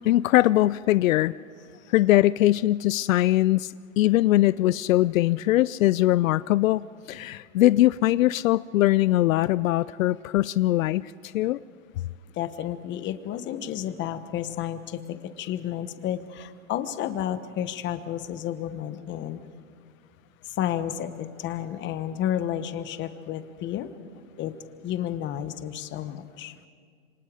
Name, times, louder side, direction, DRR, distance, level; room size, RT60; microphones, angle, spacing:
voice 1, 0.0-1.3 1.9-11.6, left 15 dB, 80° left, 18 dB, 0.5 m, -21 dB
voice 2, 12.3-19.4 20.4-23.9 24.4-24.5 24.8-26.5, left 11 dB, 30° left, 11 dB, 1.1 m, -31 dB
27.5 x 24.5 x 5.0 m, 2.1 s
hypercardioid pair, 135°, 40 cm